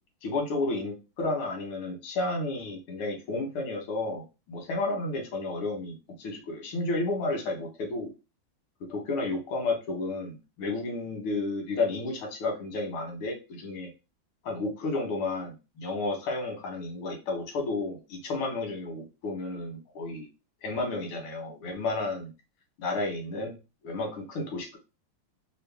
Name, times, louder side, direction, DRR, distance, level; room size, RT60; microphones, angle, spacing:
voice 1, 0.2-8.1 8.9-13.9 14.4-20.3 20.6-22.3 22.8-23.5 23.8-24.8, left 2 dB, 90° left, 2 dB, 1.9 m, -32 dB
3.9 x 2.5 x 3.3 m, 0.29 s
omnidirectional pair, 2.3 m